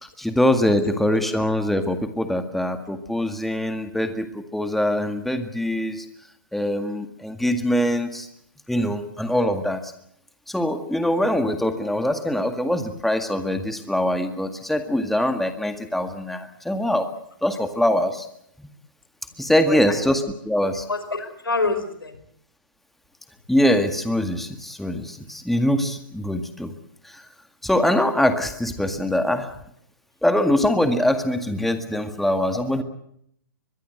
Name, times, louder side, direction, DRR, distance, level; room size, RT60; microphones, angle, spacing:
voice 1, 0.0-6.0 6.5-8.3 8.7-9.9 10.5-17.1 17.4-18.3 18.6-18.7 19.4-20.8 23.5-26.7 27.0-27.2 27.6-29.5 30.2-32.8, left 1 dB, ahead, 7 dB, 1.9 m, -23 dB
voice 2, 20.9-22.2 25.3-25.4, left 3 dB, 85° left, 10 dB, 5.1 m, -27 dB
24.5 x 21.0 x 7.9 m, 0.69 s
hypercardioid pair, 130°, 12 cm